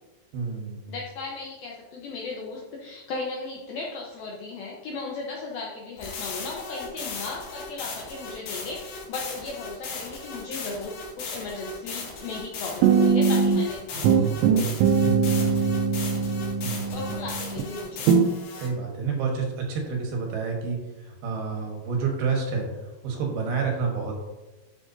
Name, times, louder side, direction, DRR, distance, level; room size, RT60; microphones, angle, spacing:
voice 1, 0.3-0.9 15.0-15.7 16.6-17.2 18.5-24.1, right 5 dB, 70° right, 1 dB, 2.8 m, -29 dB
voice 2, 0.9-14.6 16.9-18.1, left 3 dB, 90° left, -2 dB, 2.1 m, -36 dB
sound 1, 6.0-18.7, left 4 dB, 60° left, 3.3 m, -37 dB
sound 2, 12.8-13.7 14.0-17.6 18.1-18.3, right 6 dB, 85° right, 3.1 m, -21 dB
12.0 x 6.1 x 2.7 m, 1.1 s
omnidirectional pair, 5.5 m